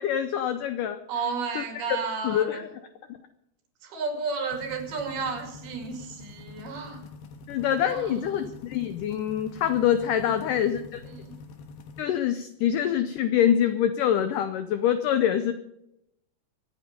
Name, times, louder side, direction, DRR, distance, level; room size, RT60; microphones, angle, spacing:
voice 1, 0.0-1.0 1.6-1.7 2.2-2.6 7.5-11.0 12.0-15.5, left 10 dB, 85° left, 10 dB, 1.8 m, -25 dB
voice 2, 1.1-2.7 3.8-7.0 7.9-8.5 10.3-10.7 11.0-11.4, right 5 dB, 65° right, 3 dB, 4.4 m, -33 dB
sound 1, 4.5-12.0, left 3 dB, 70° left, 3.1 m, -45 dB
24.5 x 9.0 x 5.2 m, 0.82 s
omnidirectional pair, 4.7 m